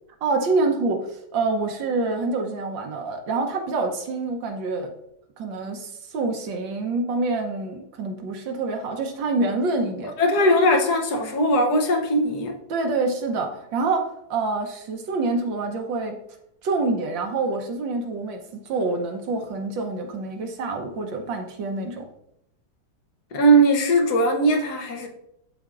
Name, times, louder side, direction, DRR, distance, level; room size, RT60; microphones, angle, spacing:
voice 1, 0.2-4.9 5.4-10.1 12.7-16.2 16.6-22.1, right 3 dB, 70° right, 1.6 m, -26 dB
voice 2, 10.2-12.6 23.3-25.1, right 1 dB, 60° left, 1.3 m, -19 dB
12.0 x 4.3 x 2.5 m
omnidirectional pair, 2.2 m